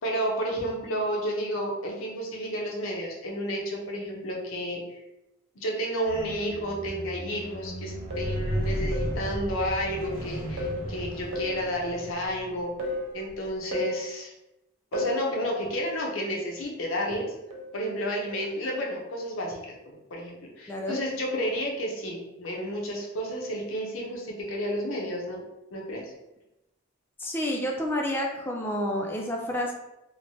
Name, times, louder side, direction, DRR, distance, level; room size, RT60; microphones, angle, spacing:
voice 1, 0.0-5.0 5.5-14.3 14.9-17.3 17.7-25.4 25.7-26.1, equal, 80° left, -1 dB, 0.7 m, -31 dB
Squeak, 6.1-12.4 13.2-13.3, equal, 45° right, 1.0 m, -34 dB
sound 1, 8.1-8.4 8.9-9.2 10.6-10.9 11.3-11.6 12.8-13.1 13.7-14.0 14.9-15.3 17.5-17.8 18.3-18.5, left 1 dB, 70° right, 0.5 m, -32 dB
voice 2, 27.2-29.7, left 1 dB, 10° left, 0 dB, 0.3 m, -29 dB
3.0 x 2.1 x 2.7 m, 0.94 s
head